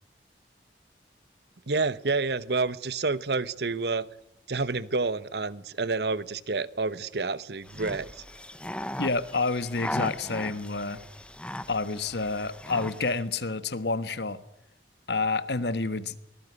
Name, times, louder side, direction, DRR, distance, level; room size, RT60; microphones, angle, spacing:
voice 1, 1.7-4.1 4.5-8.2, right 3 dB, 70° right, 1.0 m, -29 dB
sound 1, 7.7-13.2, left 1 dB, 5° left, 0.8 m, -38 dB
voice 2, 9.0-11.0 11.7-14.4 15.1-16.2, left 3 dB, 75° left, 1.4 m, -29 dB
24.5 x 19.0 x 9.6 m
head